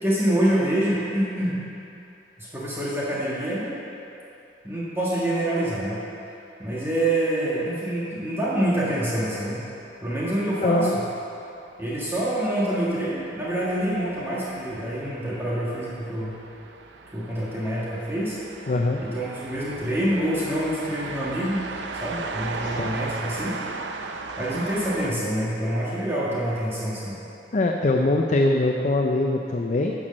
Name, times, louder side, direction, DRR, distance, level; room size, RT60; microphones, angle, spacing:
voice 1, 0.0-1.6 2.4-3.8 4.6-6.0 6.6-9.6 10.0-10.9 11.8-16.4 17.1-18.4 19.0-21.7 21.9-23.6 24.4-27.2, right 1 dB, 15° right, -8 dB, 1.5 m, -26 dB
sound 1, 9.7-25.1, right 4 dB, 90° right, 0.6 m, -38 dB
voice 2, 10.6-11.0 18.7-19.0 22.6-22.9 27.5-29.9, left 2 dB, 45° left, 2 dB, 0.5 m, -22 dB
10.0 x 6.2 x 6.4 m, 2.8 s
head